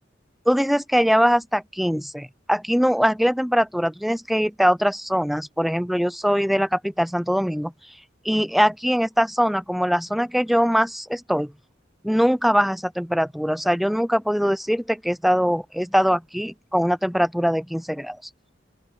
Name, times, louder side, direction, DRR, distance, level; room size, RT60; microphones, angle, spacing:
voice 1, 0.5-7.7 8.2-11.5 12.0-18.2, equal, ahead, 0.5 m, -22 dB
open air
head